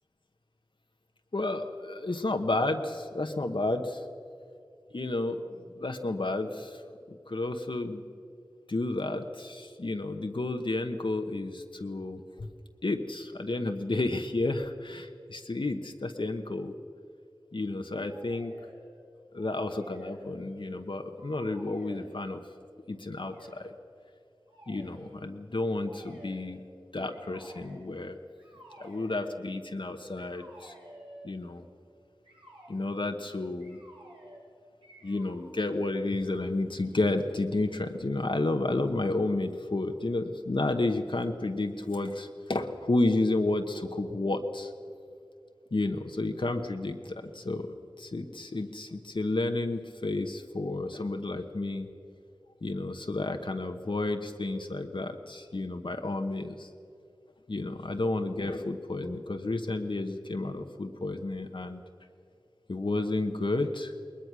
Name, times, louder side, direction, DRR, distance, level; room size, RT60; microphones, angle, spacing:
voice 1, 1.3-4.0 4.9-6.8 7.1-8.0 8.7-12.5 12.8-16.7 17.5-18.5 19.3-22.4 22.9-23.7 24.7-26.6 26.9-28.2 28.8-30.7 31.2-31.7 32.7-33.8 35.0-44.7 45.7-47.6 48.0-51.9 52.6-56.7 57.5-61.8 62.7-63.9, left 2 dB, 70° left, 5 dB, 1.0 m, -31 dB
sound 1, 18.1-19.0 19.3-20.8 21.1-22.4 23.1-23.6 24.5-25.1 25.8-26.6 27.1-27.8 28.4-29.3 30.2-31.4 32.2-32.7 33.6-34.5 34.8-35.5, right 1 dB, 85° right, 6.7 m, -52 dB
20.5 x 20.5 x 6.2 m, 2.5 s
wide cardioid pair, 40°, 9 cm